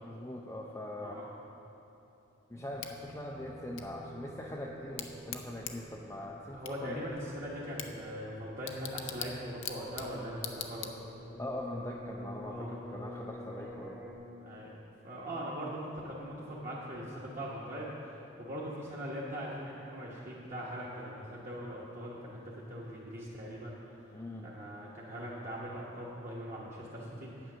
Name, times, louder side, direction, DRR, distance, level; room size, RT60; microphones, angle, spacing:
voice 1, 0.0-1.2 2.5-7.1 11.4-14.0 24.1-24.5, left 1 dB, 15° left, -1 dB, 0.5 m, -42 dB
sound 1, 2.5-14.1, equal, 15° right, 1.1 m, -49 dB
Bicycle / Tick, 2.8-11.4, left 9 dB, 65° left, 0.6 m, -45 dB
voice 2, 6.5-10.9 12.5-12.8 14.4-14.7 15.0-24.0 24.4-27.5, equal, 35° right, -6 dB, 1.2 m, -41 dB
9.1 x 8.6 x 6.1 m, 3.0 s
head